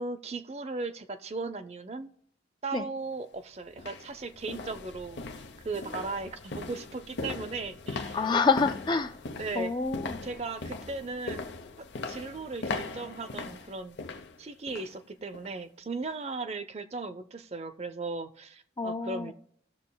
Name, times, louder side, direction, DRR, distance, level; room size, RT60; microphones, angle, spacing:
voice 1, 0.0-2.1 2.6-8.2 9.4-9.7 10.2-11.5 11.8-14.0 14.4-19.3, right 3 dB, 35° right, 0.5 m, -37 dB
sound 1, 3.0-3.1 3.7-15.0 15.3-15.6 16.0-16.1, left 3 dB, 80° left, 0.7 m, -40 dB
voice 2, 8.1-9.1 9.6-10.2 18.8-19.3, left 4 dB, 25° left, 0.5 m, -27 dB
18.5 x 6.6 x 2.2 m
head